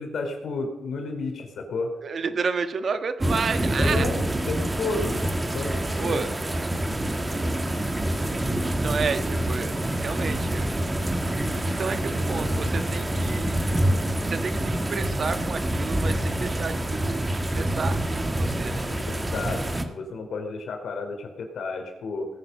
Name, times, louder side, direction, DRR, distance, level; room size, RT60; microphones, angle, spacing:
voice 1, 0.0-1.9 3.8-5.2 5.5-6.3 18.9-22.3, left 3 dB, 75° left, 4 dB, 3.4 m, -32 dB
voice 2, 2.0-4.1 6.0-6.3 8.8-10.8 11.8-13.5 14.2-18.9, right 5 dB, 55° right, 9 dB, 1.4 m, -31 dB
Thunderstorm is passing by, 3.2-19.9, right 1 dB, 20° right, 1.6 m, -26 dB
18.5 x 9.4 x 5.6 m, 0.99 s
cardioid pair, 75°, 0 cm